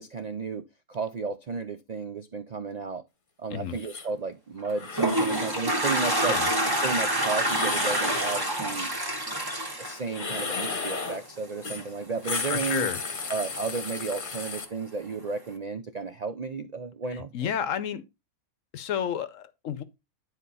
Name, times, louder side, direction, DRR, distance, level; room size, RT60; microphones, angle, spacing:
voice 1, 0.0-3.0 3.4-6.4 6.8-8.9 9.8-12.9 13.3-17.5, right 4 dB, 80° right, 0.3 m, -33 dB
sound 1, 3.8-4.1 4.7-5.6 7.4-8.4 10.1-11.2 11.6-11.9 12.1-14.7, left 4 dB, 35° left, 1.2 m, -34 dB
Toilet flush, 4.6-11.0, right 1 dB, 15° right, 1.2 m, -27 dB
voice 2, 12.5-13.0 17.1-18.0 18.7-19.8, left 9 dB, 65° left, 1.0 m, -31 dB
9.9 x 4.4 x 4.1 m
omnidirectional pair, 1.6 m